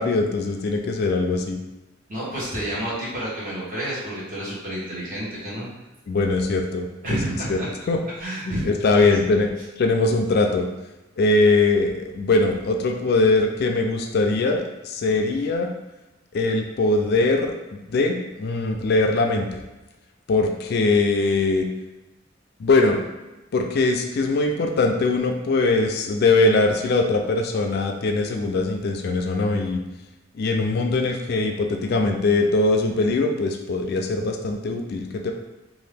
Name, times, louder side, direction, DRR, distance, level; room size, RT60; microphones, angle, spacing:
voice 1, 0.0-1.6 6.1-7.2 7.5-8.0 8.5-9.5 9.8-10.7 11.2-15.7 16.3-17.5 17.9-19.6 20.3-21.7 22.6-23.0 23.5-29.8 30.3-35.3, left 3 dB, 55° left, 3 dB, 0.3 m, -21 dB
voice 2, 2.1-5.7 7.0-7.7 8.2-8.7 8.9-9.0, right 1 dB, 45° right, -8 dB, 1.3 m, -30 dB
2.8 x 2.4 x 3.3 m, 1.1 s
head